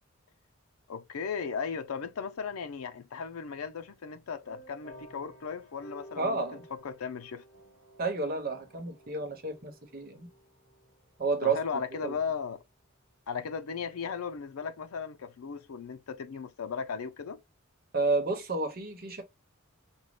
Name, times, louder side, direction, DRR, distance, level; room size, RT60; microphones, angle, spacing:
voice 1, 0.9-6.4 6.7-7.4 11.4-12.6 13.3-17.4, left 6 dB, 90° left, 0.5 m, -36 dB
sound 1, 4.4-12.5, right 1 dB, 50° left, 3.0 m, -54 dB
voice 2, 6.2-6.6 8.0-10.3 11.2-12.2 17.9-19.2, right 3 dB, 45° right, 1.0 m, -31 dB
5.3 x 2.2 x 3.2 m
head